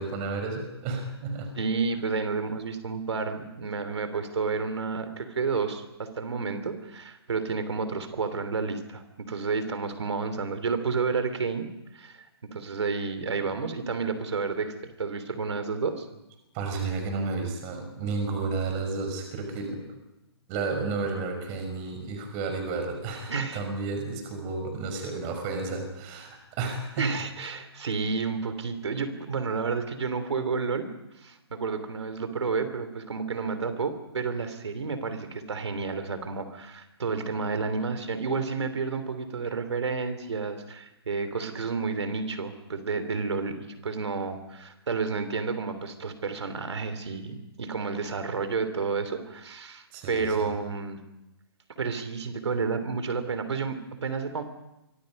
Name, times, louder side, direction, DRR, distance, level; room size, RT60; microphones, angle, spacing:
voice 1, 0.0-1.5 16.5-19.9 20.5-27.2 49.9-50.5, right 3 dB, 20° right, 4 dB, 5.3 m, -32 dB
voice 2, 1.5-11.7 11.9-16.1 23.3-23.6 27.0-30.9 31.2-43.6 43.8-51.0 51.8-54.4, right 4 dB, 90° right, 9 dB, 3.2 m, -30 dB
29.5 x 24.0 x 5.4 m, 0.96 s
hypercardioid pair, 170°, 14 cm